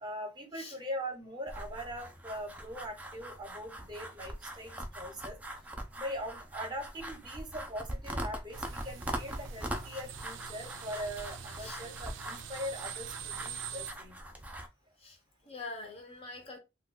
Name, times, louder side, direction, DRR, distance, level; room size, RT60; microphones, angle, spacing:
voice 1, 0.0-5.4 6.0-14.2, equal, 25° right, 0.8 m, -41 dB
sound 1, 1.5-14.7, right 1 dB, 10° right, 0.4 m, -42 dB
sound 2, 8.5-13.9, right 8 dB, 90° right, 0.4 m, -44 dB
voice 2, 15.4-16.6, left 3 dB, 30° left, 0.6 m, -44 dB
2.3 x 2.2 x 3.7 m
head